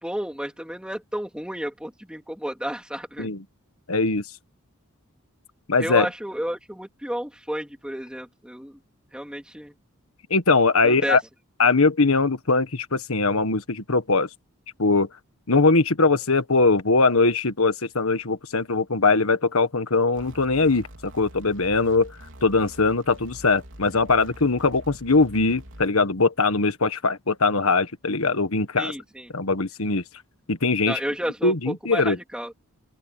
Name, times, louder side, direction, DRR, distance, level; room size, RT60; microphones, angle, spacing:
voice 1, 0.0-3.3 5.8-8.7 9.1-9.7 10.8-11.2 28.8-29.3 30.9-32.5, equal, 5° right, 3.3 m, -31 dB
voice 2, 3.9-4.2 5.7-6.0 10.3-11.2 11.6-14.3 14.8-15.1 15.5-22.1 22.4-28.9 29.3-30.0 30.5-31.0 31.4-32.2, left 3 dB, 75° left, 1.6 m, -21 dB
sound 1, 20.1-25.9, equal, 60° right, 4.4 m, -45 dB
open air
head